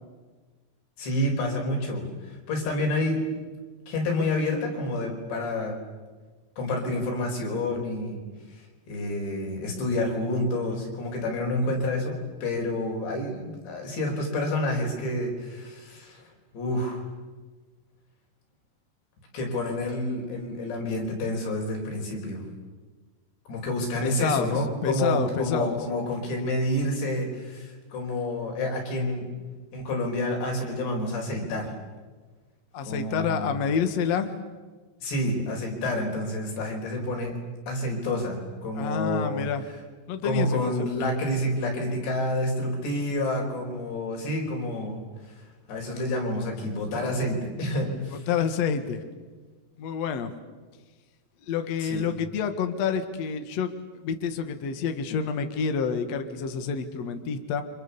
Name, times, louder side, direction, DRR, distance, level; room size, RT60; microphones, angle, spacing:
voice 1, 1.0-3.3 3.9-5.8 6.6-8.2 8.5-16.3 16.5-17.0 19.3-22.5 23.5-29.3 29.7-31.7 32.9-33.6 35.0-37.3 37.7-39.5 40.2-45.0 45.2-48.3 51.8-52.1, left 1 dB, 75° left, 1 dB, 6.9 m, -29 dB
voice 2, 24.0-24.5 24.8-25.8 32.7-34.3 38.8-39.6 40.1-40.9 48.3-49.0 49.8-50.3 51.5-53.7 54.0-57.6, left 6 dB, 55° left, 7 dB, 2.1 m, -28 dB
30.0 x 26.5 x 7.0 m, 1.3 s
omnidirectional pair, 5.0 m